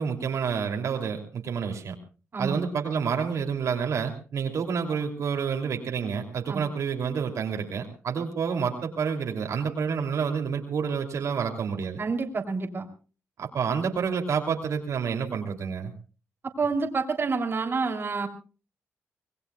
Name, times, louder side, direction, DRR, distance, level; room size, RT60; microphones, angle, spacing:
voice 1, 0.0-2.0 2.4-12.0 13.4-15.9, right 6 dB, 70° right, 3 dB, 2.9 m, -29 dB
voice 2, 2.3-2.6 6.5-6.6 12.0-12.9 16.6-18.3, right 4 dB, 45° right, 3 dB, 3.1 m, -28 dB
26.0 x 20.0 x 2.3 m, 0.36 s
cardioid pair, 90°, 5 cm